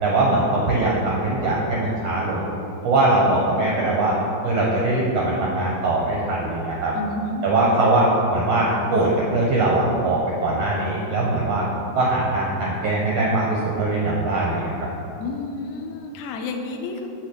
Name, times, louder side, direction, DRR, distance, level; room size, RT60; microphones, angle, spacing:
voice 1, 0.0-2.5 2.8-4.2 4.4-6.9 7.4-11.7 11.9-14.7, right 2 dB, 70° right, -4 dB, 1.6 m, -21 dB
voice 2, 6.9-7.5 15.2-17.1, left 2 dB, 75° left, 3 dB, 2.0 m, -30 dB
6.3 x 5.1 x 6.8 m, 2.9 s
omnidirectional pair, 3.8 m